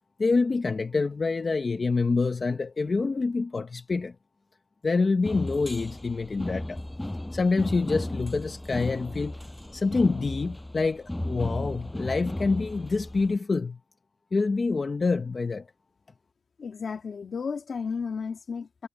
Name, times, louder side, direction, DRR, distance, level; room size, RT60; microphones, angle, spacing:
voice 1, 0.2-4.1 4.8-6.8 7.3-9.4 9.7-13.8 14.3-15.7, left 4 dB, 35° left, 0.9 m, -26 dB
sound 1, 5.2-13.3, left 1 dB, 10° left, 5.9 m, -35 dB
voice 2, 16.6-18.9, left 5 dB, 50° left, 1.6 m, -33 dB
wide cardioid pair, 170°, 0 cm